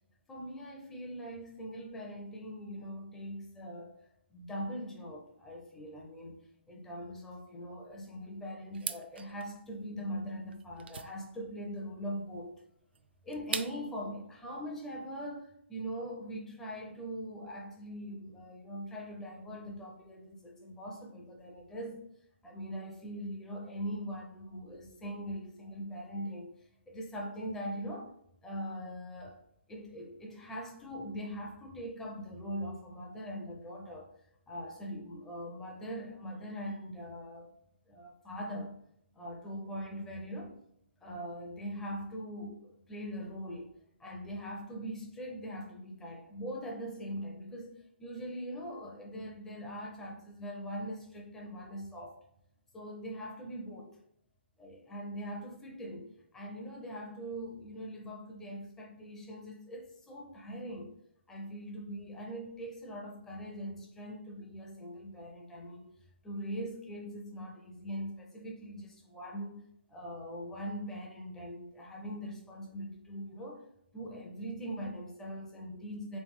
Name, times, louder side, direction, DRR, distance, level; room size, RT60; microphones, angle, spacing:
voice 1, 0.3-4.0 4.3-6.4 6.7-12.5 13.2-22.0 22.4-28.1 28.4-29.4 29.7-34.1 34.5-37.5 37.9-38.8 39.1-40.6 41.0-52.2 52.7-54.0 54.6-60.9 61.3-65.9 66.2-69.6 69.9-73.7 73.9-76.2, equal, 5° left, 0.4 m, -41 dB
sound 1, 8.7-14.0, right 6 dB, 60° right, 0.3 m, -43 dB
3.3 x 3.2 x 3.4 m
hypercardioid pair, 160°, 6 cm